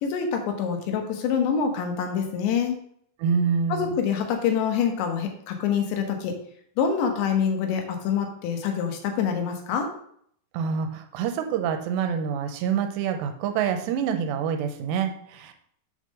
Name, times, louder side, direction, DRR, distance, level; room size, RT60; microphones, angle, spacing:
voice 1, 0.0-2.8 3.7-6.3 6.8-9.9, left 7 dB, 85° left, 4 dB, 3.4 m, -26 dB
voice 2, 3.2-4.0 10.5-15.5, right 7 dB, 85° right, 6 dB, 2.8 m, -26 dB
7.2 x 3.7 x 6.3 m, 0.66 s
omnidirectional pair, 5.0 m